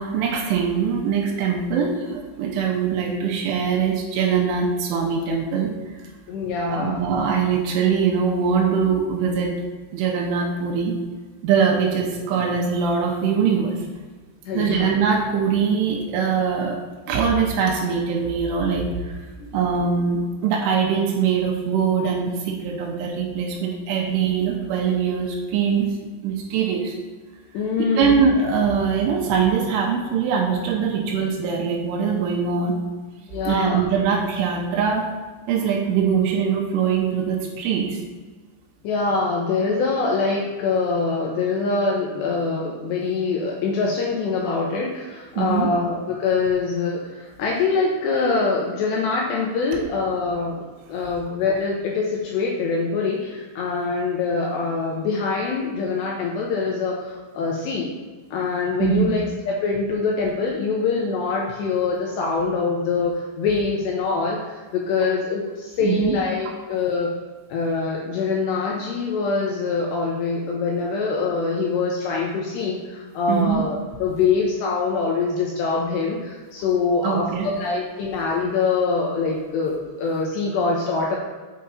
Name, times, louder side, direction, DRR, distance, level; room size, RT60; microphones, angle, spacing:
voice 1, 0.0-5.7 6.7-9.5 9.9-10.9 11.4-13.8 14.5-16.8 17.1-19.1 19.5-25.9 26.2-27.0 28.0-32.8 33.5-35.1 35.5-38.0 45.4-45.7 58.8-59.1 65.8-66.2 73.3-73.7 77.0-77.5, right 6 dB, 85° right, 0 dB, 3.3 m, -22 dB
voice 2, 6.3-7.0 14.5-14.9 19.4-19.8 27.5-28.1 31.0-31.2 33.3-33.8 38.8-50.6 50.9-57.9 58.3-67.2 67.5-81.2, left 4 dB, 80° left, -2 dB, 2.6 m, -24 dB
7.5 x 5.7 x 4.2 m, 1.4 s
omnidirectional pair, 5.6 m